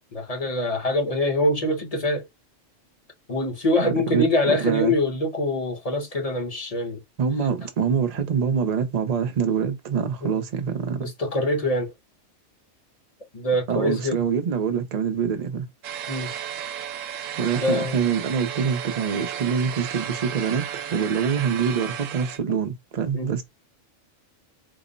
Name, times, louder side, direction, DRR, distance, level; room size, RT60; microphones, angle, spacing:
voice 1, 0.1-2.3 3.3-7.0 10.2-10.4 11.0-11.9 13.3-14.2 16.1-16.3 17.6-18.1 23.1-23.3, left 1 dB, 30° left, 0.9 m, -24 dB
voice 2, 3.8-4.9 7.2-11.1 13.7-15.7 17.4-23.4, right 6 dB, 40° right, 0.6 m, -25 dB
sound 1, 15.8-22.4, right 9 dB, 80° right, 1.0 m, -34 dB
3.7 x 2.1 x 3.8 m
omnidirectional pair, 1.3 m